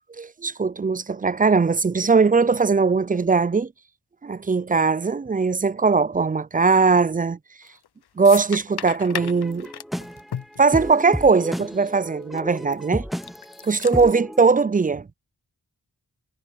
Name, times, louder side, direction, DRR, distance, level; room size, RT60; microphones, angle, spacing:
voice 1, 0.0-3.7 4.2-7.4 8.2-9.7 10.6-13.1 13.6-15.1, right 4 dB, 20° right, 0.4 m, -20 dB
sound 1, 7.6-7.9 8.2-11.3 11.5-11.7 12.4-12.7 13.1-14.2, left 9 dB, 70° left, 0.7 m, -35 dB
sound 2, 9.1-14.5, equal, ahead, 0.8 m, -32 dB
cardioid pair, 45°, 40 cm